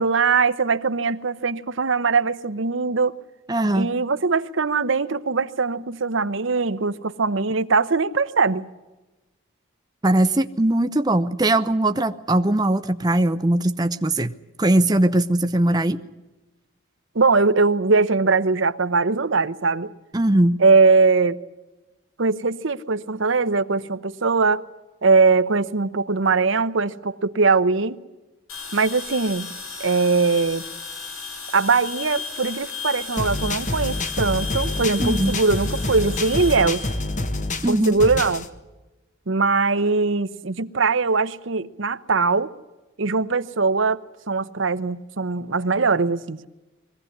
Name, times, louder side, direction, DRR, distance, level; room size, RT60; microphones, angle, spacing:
voice 1, 0.0-3.2 3.7-8.7 17.1-19.9 20.6-21.4 22.2-24.6 25.0-28.0 28.7-29.5 29.8-30.6 31.5-36.8 37.7-38.5 39.3-42.5 43.0-44.0 44.3-46.5, right 4 dB, 75° right, 0.9 m, -21 dB
voice 2, 3.5-3.9 10.0-14.3 14.6-16.0 20.1-20.6 35.0-35.3 37.6-38.0, right 1 dB, 20° right, 0.7 m, -20 dB
sound 1, 28.5-37.7, left 4 dB, 85° left, 6.7 m, -35 dB
sound 2, 33.2-38.5, left 2 dB, 40° left, 1.5 m, -27 dB
22.0 x 16.5 x 9.8 m
head